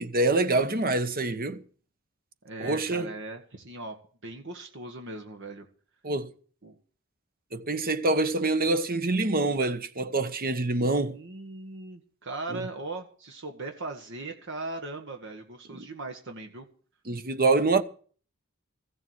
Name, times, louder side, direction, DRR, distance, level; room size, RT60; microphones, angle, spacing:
voice 1, 0.0-1.6 2.6-3.1 6.0-6.3 7.5-11.2 12.5-12.6 15.7-15.8 17.1-17.8, right 2 dB, 45° right, 1.2 m, -26 dB
voice 2, 2.4-4.0 4.2-5.6 6.6-6.7 11.1-16.6, right 2 dB, 60° right, 1.6 m, -39 dB
15.5 x 7.2 x 8.7 m
head